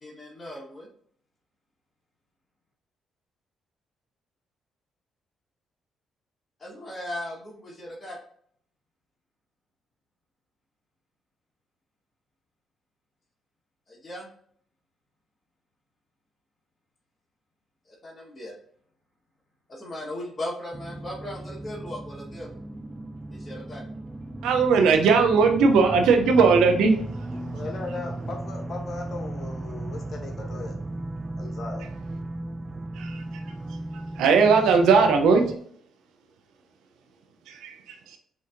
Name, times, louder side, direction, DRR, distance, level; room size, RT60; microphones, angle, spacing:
voice 1, 0.0-0.9 6.6-8.2 13.9-14.3 17.9-18.5 19.7-22.5 23.3-23.8, left 1 dB, 35° left, -3 dB, 1.5 m, -37 dB
sound 1, 20.7-35.6, right 2 dB, 25° right, 0.3 m, -36 dB
voice 2, 24.4-27.0 33.0-33.2 34.2-35.4 37.5-38.2, right 5 dB, 80° right, 4 dB, 0.7 m, -19 dB
voice 3, 27.5-30.8 31.4-31.9, left 3 dB, 50° left, 1 dB, 1.0 m, -37 dB
5.9 x 2.8 x 2.6 m, 0.62 s
supercardioid pair, 60°, 0 cm